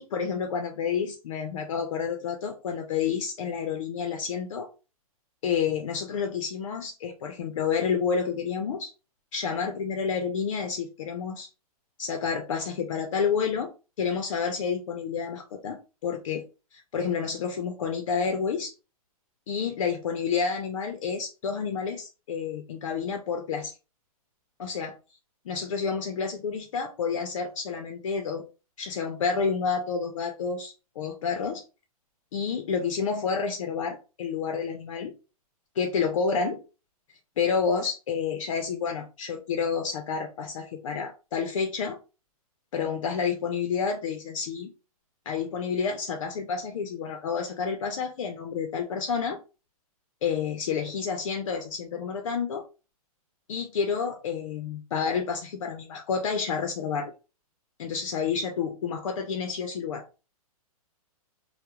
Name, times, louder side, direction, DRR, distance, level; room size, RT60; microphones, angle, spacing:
voice 1, 0.0-4.7 5.4-8.9 9.3-11.5 12.0-13.7 14.0-16.4 16.7-18.7 19.5-23.7 24.6-24.9 25.5-28.4 28.8-31.6 32.3-35.1 35.8-36.6 37.4-42.0 42.7-44.7 45.3-49.4 50.2-52.6 53.5-57.1 57.8-60.0, left 6 dB, 55° left, 4 dB, 0.5 m, -29 dB
2.3 x 2.1 x 2.9 m, 0.32 s
hypercardioid pair, 160°, 19 cm